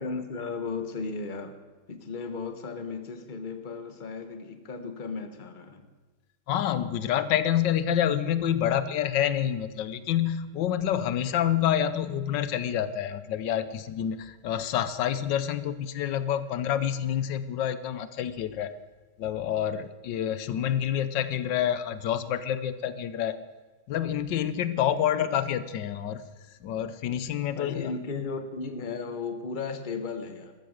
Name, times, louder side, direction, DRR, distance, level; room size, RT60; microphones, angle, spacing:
voice 1, 0.0-1.6 1.9-5.9 27.5-30.6, left 4 dB, 30° left, 8 dB, 1.2 m, -35 dB
voice 2, 6.5-18.7 19.2-23.4 23.9-26.2 26.6-27.9, left 10 dB, 90° left, 14 dB, 1.5 m, -28 dB
13.5 x 13.5 x 6.5 m, 1.3 s
omnidirectional pair, 1.9 m